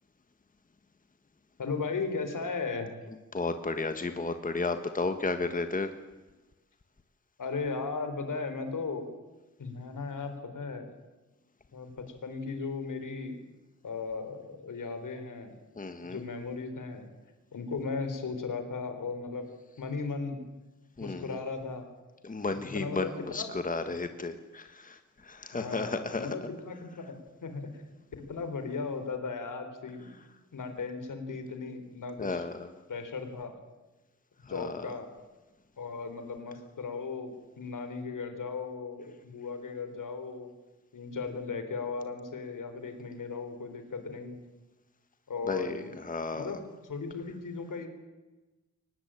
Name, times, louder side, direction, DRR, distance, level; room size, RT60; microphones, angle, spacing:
voice 1, 1.6-2.9 7.4-9.1 9.6-10.9 11.7-13.4 13.8-15.5 16.0-17.1 17.5-19.5 19.8-20.4 21.0-21.9 22.7-23.6 25.5-27.8 28.2-30.1 30.5-32.5 32.9-33.5 34.4-35.1 35.8-40.5 40.9-44.4 45.3-46.1 46.3-47.9, left 4 dB, 75° left, 8 dB, 4.1 m, -36 dB
voice 2, 3.3-5.9 15.8-16.2 21.0-21.4 22.2-26.3 32.2-32.7 34.5-34.8 45.5-46.6, left 3 dB, 25° left, 8 dB, 1.4 m, -33 dB
23.5 x 19.5 x 9.0 m, 1.2 s
wide cardioid pair, 135°, 32 cm